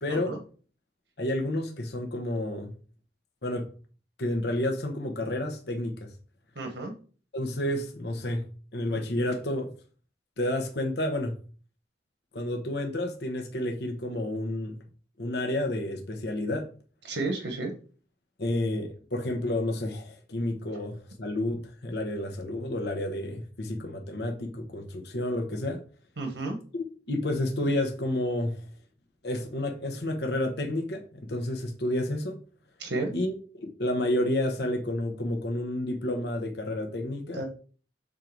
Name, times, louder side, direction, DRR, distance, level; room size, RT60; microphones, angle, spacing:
voice 1, 0.0-0.3 1.2-2.7 3.4-3.7 4.2-6.1 7.3-8.4 8.7-9.7 10.4-11.4 12.3-14.8 15.2-16.6 18.4-25.8 26.7-28.6 29.2-32.4 33.1-33.3 33.6-37.4, left 1 dB, 65° left, 4 dB, 1.0 m, -30 dB
voice 2, 6.5-6.9 17.0-17.7 26.2-26.6 32.8-33.1 37.3-37.4, right 2 dB, 85° right, 4 dB, 1.2 m, -32 dB
6.4 x 3.9 x 4.6 m, 0.40 s
head